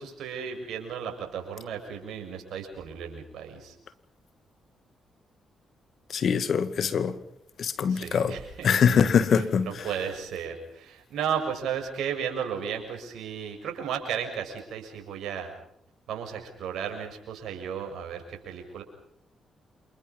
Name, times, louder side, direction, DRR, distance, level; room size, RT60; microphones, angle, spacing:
voice 1, 0.0-3.8 6.9-7.0 7.9-8.7 9.3-15.5 16.1-18.8, right 7 dB, 70° right, 6.8 m, -34 dB
voice 2, 6.1-7.1 7.6-8.3 8.6-9.7, left 7 dB, 60° left, 2.1 m, -23 dB
29.0 x 27.5 x 5.5 m
hypercardioid pair, 45°, 0 cm